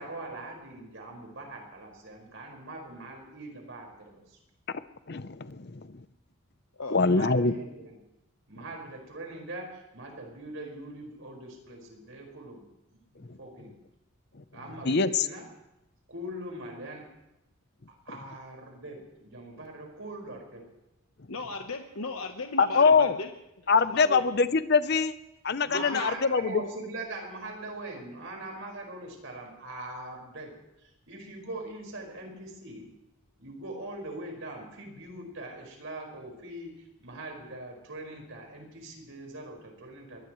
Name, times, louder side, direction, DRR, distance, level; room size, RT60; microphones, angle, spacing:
voice 1, 0.0-4.4 7.0-7.9 8.5-12.6 13.1-13.7 14.5-15.4 16.1-17.0 18.0-20.6 25.6-30.5 30.8-32.9 33.4-40.2, right 2 dB, 65° right, 1 dB, 5.2 m, -42 dB
voice 2, 5.1-6.0 6.9-7.5 13.3-13.4 14.8-15.3 22.6-23.2 23.7-25.2 25.4-26.6, left 4 dB, 50° left, 13 dB, 0.7 m, -24 dB
voice 3, 21.3-23.3 23.6-24.2 25.7-26.1, left 3 dB, 80° left, 5 dB, 1.1 m, -37 dB
23.0 x 19.0 x 3.2 m, 0.91 s
head